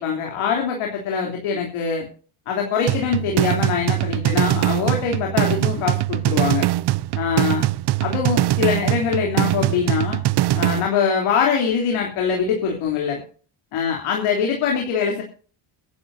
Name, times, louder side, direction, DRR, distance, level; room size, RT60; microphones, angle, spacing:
voice 1, 0.0-2.1 2.5-6.7 7.1-7.7 8.0-10.2 10.5-13.2 13.7-15.2, left 6 dB, 80° left, 0 dB, 3.4 m, -23 dB
sound 1, 2.9-10.9, right 16 dB, 55° right, 0.5 m, -22 dB
23.0 x 11.5 x 2.7 m, 0.41 s
cardioid pair, 95°, 50 cm